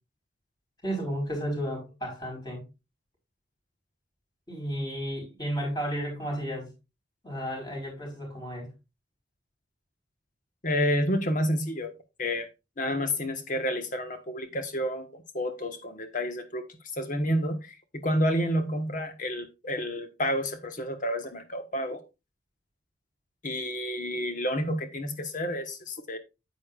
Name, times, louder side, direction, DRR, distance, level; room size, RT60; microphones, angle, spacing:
voice 1, 0.8-2.6 4.5-6.7 7.2-8.7, equal, 20° left, 4.6 m, -33 dB
voice 2, 10.6-11.9 12.2-12.5 12.8-16.7 16.9-22.0 23.4-26.2, equal, 40° left, 1.4 m, -29 dB
9.7 x 8.5 x 2.5 m
head